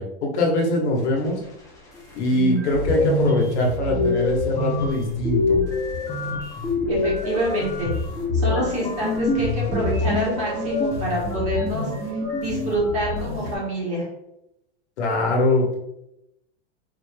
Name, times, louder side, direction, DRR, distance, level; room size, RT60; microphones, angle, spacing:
voice 1, 0.0-1.4 2.1-5.6 15.0-15.8, left 1 dB, 90° left, 0 dB, 1.2 m, -22 dB
sound 1, 2.0-2.1 2.3-13.5, left 2 dB, 10° left, 0.6 m, -25 dB
voice 2, 6.9-7.9 8.3-11.9 12.4-14.0, right 1 dB, 20° right, -5 dB, 1.3 m, -26 dB
4.3 x 3.2 x 2.2 m, 0.85 s
supercardioid pair, 160°, 33 cm